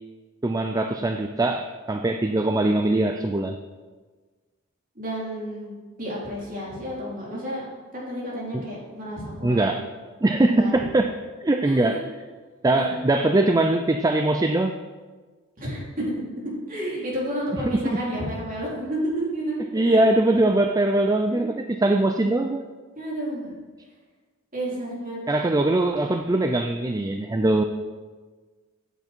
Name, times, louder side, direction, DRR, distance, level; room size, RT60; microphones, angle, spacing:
voice 1, 0.4-3.6 8.5-8.6 9.4-9.8 10.2-11.1 11.4-12.0 12.6-14.8 17.7-18.0 19.7-22.6 25.3-27.6, right 2 dB, 15° right, 6 dB, 0.4 m, -22 dB
voice 2, 5.0-7.6 7.9-9.8 10.5-10.8 11.6-12.0 12.7-12.9 15.6-16.0 16.7-20.1 21.3-21.5 23.0-23.5 24.5-25.3, equal, 40° right, -5 dB, 3.8 m, -31 dB
15.0 x 8.2 x 4.5 m, 1.4 s
head